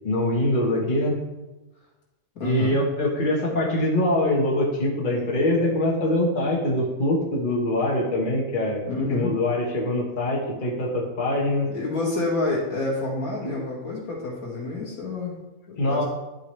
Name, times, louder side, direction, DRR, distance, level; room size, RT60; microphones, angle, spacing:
voice 1, 0.0-1.1 2.4-8.8 9.1-11.7 13.4-13.5 15.8-16.0, left 1 dB, 40° left, -3 dB, 1.5 m, -23 dB
voice 2, 2.3-2.8 8.9-9.4 11.7-15.3 15.7-16.0, left 2 dB, 85° left, -5 dB, 2.7 m, -28 dB
11.5 x 4.9 x 3.3 m, 1.1 s
omnidirectional pair, 1.4 m